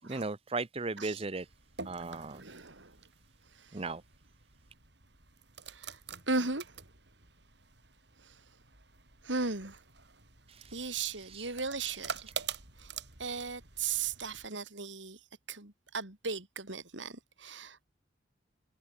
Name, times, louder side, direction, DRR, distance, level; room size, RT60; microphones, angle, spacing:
voice 1, 0.0-1.5 1.8-2.4 3.7-4.0 10.5-11.5, right 3 dB, 35° right, 0.9 m, -37 dB
sound 1, 1.4-14.5, right 6 dB, 65° right, 7.0 m, -47 dB
voice 2, 2.3-3.0 3.5-3.8 5.7-6.0 6.3-6.8 8.2-8.4 9.2-9.8 10.7-12.3 12.8-12.9 13.2-15.2 15.5-17.8, right 4 dB, 85° right, 4.0 m, -37 dB
head